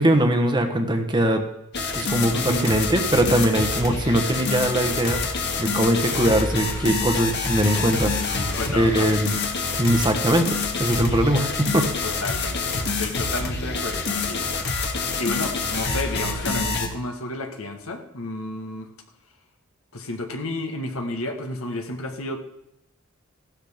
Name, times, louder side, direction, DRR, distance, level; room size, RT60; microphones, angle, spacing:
voice 1, 0.0-1.4 1.9-5.2 5.6-9.4 9.8-11.9, right 1 dB, 20° right, 5 dB, 1.1 m, -21 dB
sound 1, 1.7-16.9, left 3 dB, 55° left, 1.5 m, -26 dB
voice 2, 2.3-2.7 8.5-9.2 12.0-12.7 13.0-14.5 15.2-18.9 19.9-22.4, left 2 dB, 80° left, 4 dB, 1.5 m, -31 dB
15.0 x 11.5 x 3.6 m, 0.82 s
head